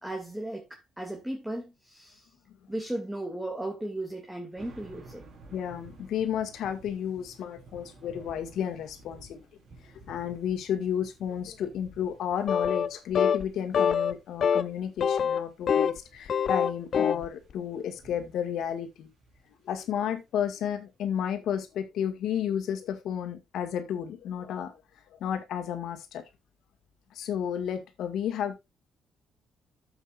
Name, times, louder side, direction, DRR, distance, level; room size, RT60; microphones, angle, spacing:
voice 1, 0.0-2.3 2.7-5.2, right 1 dB, 5° right, 2.5 m, -36 dB
sound 1, 4.6-19.7 20.3-20.4, right 3 dB, 60° right, 4.5 m, -54 dB
voice 2, 5.5-9.4 10.1-19.1 19.7-24.7 25.2-26.2 27.1-28.6, left 9 dB, 80° left, 2.0 m, -32 dB
sound 2, 12.5-12.9 13.2-13.4 13.7-14.1 14.4-14.6 15.0-16.0 16.3-17.3, left 7 dB, 55° left, 0.7 m, -25 dB
12.5 x 8.0 x 2.6 m
cardioid pair, 90°, 0 cm